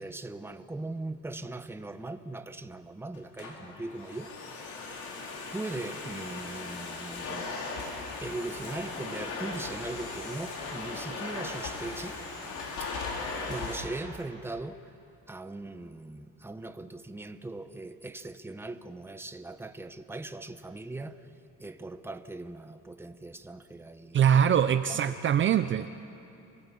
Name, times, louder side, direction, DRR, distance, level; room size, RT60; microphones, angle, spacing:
voice 1, 0.0-4.8 5.5-7.5 8.2-12.2 12.8-14.8 15.3-21.2 21.6-24.3 24.9-25.2, right 2 dB, 10° right, 0.9 m, -40 dB
Domestic sounds home sounds, 3.1-13.8, left 3 dB, 85° left, 4.3 m, -38 dB
voice 2, 24.1-25.9, right 8 dB, 40° right, 0.6 m, -23 dB
27.0 x 18.5 x 8.4 m
cardioid pair, 135°, 29 cm